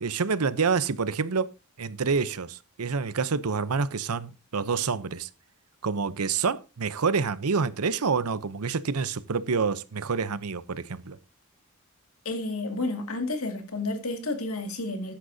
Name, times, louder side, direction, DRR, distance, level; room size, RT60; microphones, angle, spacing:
voice 1, 0.0-1.5 1.8-5.3 5.8-11.2, right 5 dB, 85° right, 0.7 m, -27 dB
voice 2, 12.2-15.1, left 2 dB, 70° left, 2.2 m, -31 dB
13.0 x 10.0 x 2.7 m
head